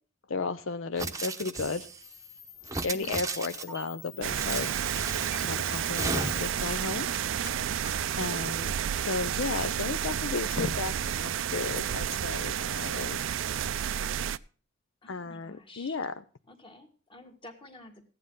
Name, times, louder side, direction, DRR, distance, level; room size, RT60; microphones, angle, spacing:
voice 1, 0.3-1.9 2.8-4.7 5.4-7.1 8.2-13.3 15.1-16.1, left 4 dB, 75° left, 11 dB, 0.6 m, -34 dB
sound 1, 1.0-2.0 2.6-3.8 4.4-5.4 6.0-6.6, right 3 dB, 15° right, 0.8 m, -35 dB
Camera, 2.0-9.2, left 7 dB, 50° left, 1.3 m, -48 dB
voice 2, 2.9-3.3 15.0-16.0 16.5-18.0, left 1 dB, 25° left, 5 dB, 1.7 m, -51 dB
sound 2, 4.2-14.4, right 9 dB, 75° right, 0.4 m, -31 dB
15.0 x 9.8 x 3.7 m, 0.38 s
head